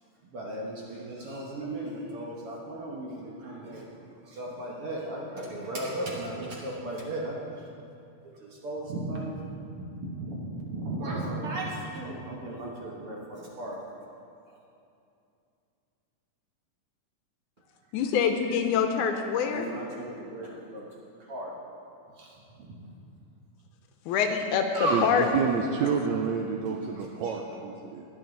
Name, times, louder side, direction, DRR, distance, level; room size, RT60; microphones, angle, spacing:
voice 1, 0.3-3.9 4.2-7.7 8.4-13.8 19.3-21.5 22.2-22.3 22.6-22.8 24.7-25.3 26.9-27.3, right 1 dB, 60° right, -3 dB, 1.6 m, -35 dB
voice 2, 17.9-19.7 24.1-24.7 25.0-25.2, left 7 dB, 80° left, 5 dB, 2.0 m, -25 dB
voice 3, 24.9-28.0, right 6 dB, 90° right, 2 dB, 1.6 m, -29 dB
20.5 x 7.0 x 3.9 m, 2.6 s
omnidirectional pair, 3.8 m